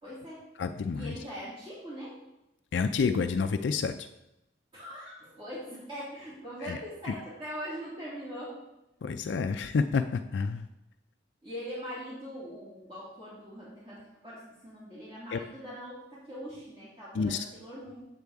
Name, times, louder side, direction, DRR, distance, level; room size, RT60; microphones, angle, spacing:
voice 1, 0.0-0.5 0.9-2.2 4.7-8.6 11.4-18.0, equal, 30° right, -9 dB, 2.7 m, -42 dB
voice 2, 0.6-1.1 2.7-3.9 6.6-6.8 9.0-10.6 15.3-15.4 17.2-17.4, left 5 dB, 70° left, 7 dB, 0.4 m, -29 dB
8.2 x 7.4 x 3.5 m, 0.90 s
head